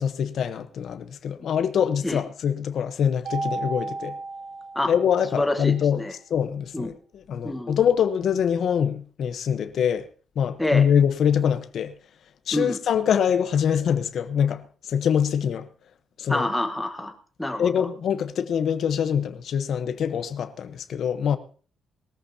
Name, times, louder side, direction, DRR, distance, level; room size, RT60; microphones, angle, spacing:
voice 1, 0.0-4.1 4.9-6.0 6.3-10.1 10.4-11.9 12.5-15.7 16.2-16.5 17.6-21.4, left 8 dB, 55° left, 1.0 m, -24 dB
Mallet percussion, 3.2-5.5, right 3 dB, 70° right, 4.6 m, -33 dB
voice 2, 5.3-6.1 6.7-6.9 7.4-7.8 10.6-10.9 12.5-12.8 16.3-17.1 17.4-17.9, left 1 dB, 5° left, 1.2 m, -27 dB
20.5 x 14.0 x 2.8 m
cardioid pair, 160°, 0 cm